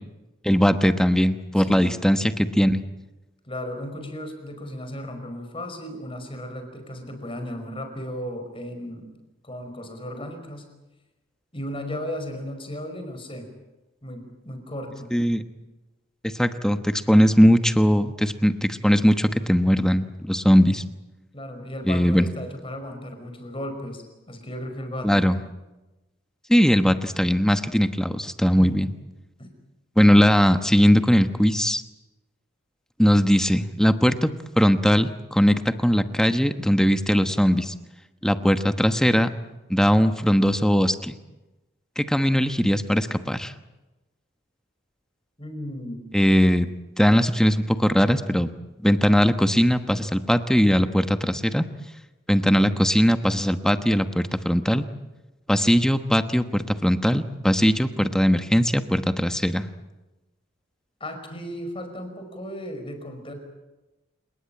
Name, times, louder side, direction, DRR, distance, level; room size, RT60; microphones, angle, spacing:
voice 1, 0.4-2.8 15.1-15.4 16.2-20.8 21.9-22.3 25.0-25.4 26.5-28.9 30.0-31.8 33.0-34.3 34.6-37.7 38.2-39.3 39.7-41.1 42.0-43.5 46.1-46.7 47.0-48.5 48.8-51.7 52.3-54.8 55.5-59.7, equal, 5° left, 9 dB, 1.1 m, -20 dB
voice 2, 1.6-2.0 3.5-9.1 9.4-10.7 11.5-13.5 14.0-15.1 21.3-25.3 28.5-28.9 29.4-29.5 45.4-46.1 61.0-63.3, equal, 30° left, 6 dB, 5.2 m, -35 dB
29.0 x 19.0 x 8.9 m, 1.0 s
head